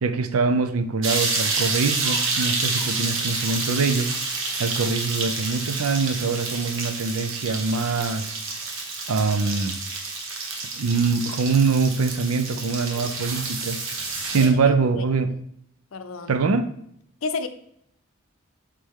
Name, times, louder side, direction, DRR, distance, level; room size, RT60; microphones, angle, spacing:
voice 1, 0.0-4.1 4.6-8.4 9.1-9.8 10.8-13.8 14.3-15.3 16.3-16.7, right 4 dB, 85° right, 0.5 m, -23 dB
sound 1, 1.0-14.5, right 3 dB, 65° right, 1.2 m, -29 dB
Fowl, 1.2-6.2, right 3 dB, 45° right, 0.9 m, -44 dB
voice 2, 14.4-15.0 15.9-16.4 17.2-17.5, left 4 dB, 70° left, 0.6 m, -31 dB
8.3 x 3.4 x 3.6 m
head